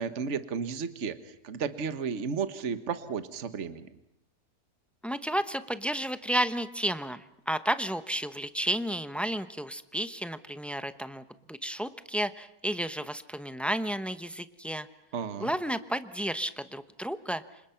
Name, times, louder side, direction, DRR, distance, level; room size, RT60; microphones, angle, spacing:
voice 1, 0.0-3.9 15.1-15.5, right 6 dB, 45° right, 11 dB, 1.5 m, -33 dB
voice 2, 5.0-14.9 15.4-17.4, equal, ahead, 11 dB, 0.5 m, -32 dB
29.5 x 26.0 x 5.8 m, 0.76 s
omnidirectional pair, 1.8 m